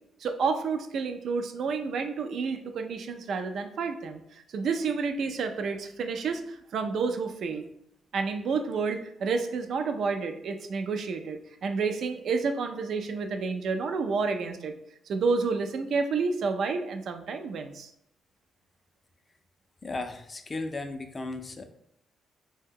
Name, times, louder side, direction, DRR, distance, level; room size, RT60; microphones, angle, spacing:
voice 1, 0.2-7.6 8.1-14.7 15.1-17.9, right 4 dB, 65° right, 6 dB, 0.3 m, -30 dB
voice 2, 19.8-21.6, left 2 dB, 30° left, 7 dB, 0.4 m, -35 dB
2.7 x 2.1 x 3.6 m, 0.75 s
cardioid pair, 90°, 0 cm